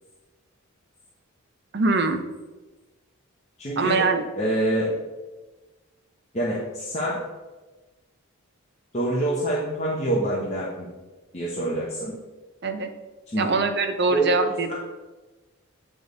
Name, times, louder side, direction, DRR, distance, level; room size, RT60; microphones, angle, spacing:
voice 1, 1.7-2.2 3.8-4.2 12.6-12.9 13.4-14.7, right 3 dB, 50° right, 6 dB, 0.6 m, -23 dB
voice 2, 3.6-4.1 4.4-4.9 6.3-7.2 8.9-10.9 11.3-12.2 13.3-13.5 14.1-14.7, right 1 dB, 30° left, -6 dB, 0.9 m, -26 dB
8.6 x 3.5 x 3.9 m, 1.2 s
head